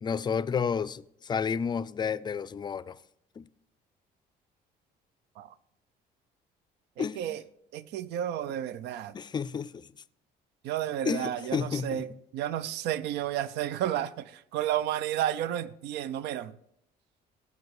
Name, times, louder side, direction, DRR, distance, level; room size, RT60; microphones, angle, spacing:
voice 1, 0.0-3.0 3.4-3.5 7.0-7.4 9.1-9.9 11.1-12.1, left 6 dB, 25° left, 0.4 m, -31 dB
voice 2, 7.0-7.4 7.7-9.1 10.6-16.5, right 11 dB, 80° right, 0.5 m, -32 dB
15.5 x 5.6 x 4.8 m
cardioid pair, 110°, 17 cm